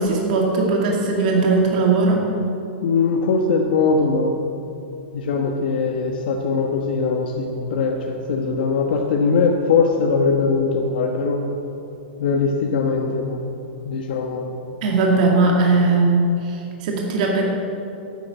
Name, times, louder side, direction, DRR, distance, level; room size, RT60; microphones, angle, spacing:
voice 1, 0.0-2.3 14.8-17.4, right 3 dB, 40° right, -1 dB, 2.2 m, -19 dB
voice 2, 2.8-4.3 5.1-11.4 12.2-13.4 13.8-14.5, left 4 dB, 55° left, 1 dB, 1.2 m, -21 dB
11.5 x 8.8 x 8.5 m, 2.7 s
supercardioid pair, 175°, 6 cm